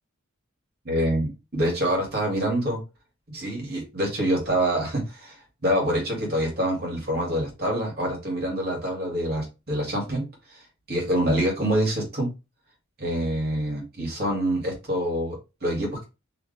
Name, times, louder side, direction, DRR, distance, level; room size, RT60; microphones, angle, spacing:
voice 1, 0.8-2.8 3.3-5.3 5.6-10.2 10.5-10.6 10.9-12.3 13.0-16.0, right 1 dB, 50° right, -1 dB, 2.3 m, -26 dB
5.0 x 3.0 x 3.4 m, 0.27 s
head